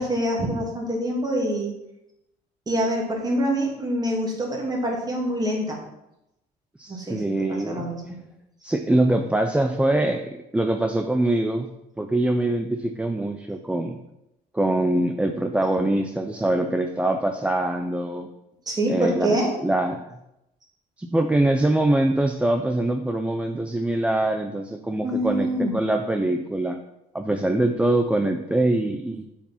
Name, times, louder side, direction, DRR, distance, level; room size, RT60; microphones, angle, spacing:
voice 1, 0.0-1.7 2.7-5.8 6.9-8.2 18.7-19.5 25.0-25.7, right 1 dB, 25° right, -1 dB, 2.6 m, -25 dB
voice 2, 6.8-7.9 8.6-11.7 12.0-14.0 14.5-18.3 18.9-19.4 19.6-20.2 21.0-26.8 27.1-29.3, right 1 dB, 5° right, 5 dB, 0.5 m, -23 dB
7.2 x 4.9 x 5.8 m, 0.87 s
cardioid pair, 110°, 17 cm